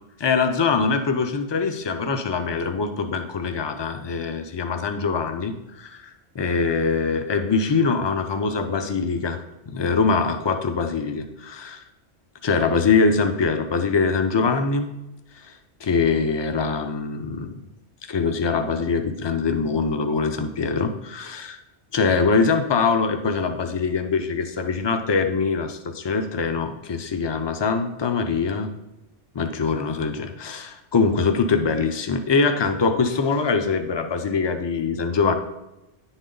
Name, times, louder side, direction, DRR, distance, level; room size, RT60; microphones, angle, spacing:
voice 1, 0.2-9.4 9.7-11.8 12.4-14.9 15.3-15.5 15.8-17.6 18.0-21.6 21.9-28.7 29.3-35.3, left 4 dB, 35° left, 7 dB, 0.4 m, -23 dB
10.0 x 4.0 x 3.9 m, 0.97 s
omnidirectional pair, 1.1 m